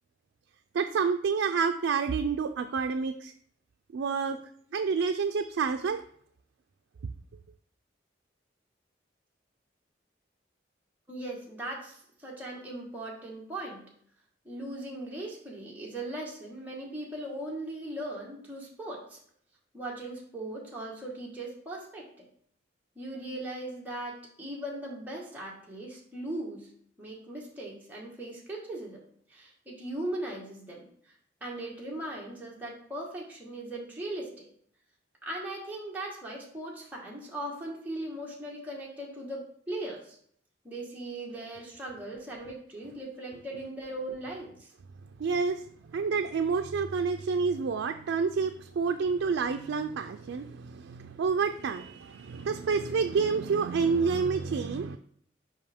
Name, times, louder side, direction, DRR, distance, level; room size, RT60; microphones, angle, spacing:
voice 1, 0.7-3.3 3.9-4.4 4.7-6.0 45.2-55.0, right 5 dB, 80° right, 7 dB, 0.3 m, -28 dB
voice 2, 11.1-13.8 14.4-19.2 19.7-22.3 22.9-26.7 27.0-29.0 29.3-30.9 31.4-34.5 35.2-40.2 40.6-44.7, right 1 dB, 10° right, -4 dB, 1.3 m, -39 dB
5.5 x 5.0 x 3.5 m, 0.62 s
head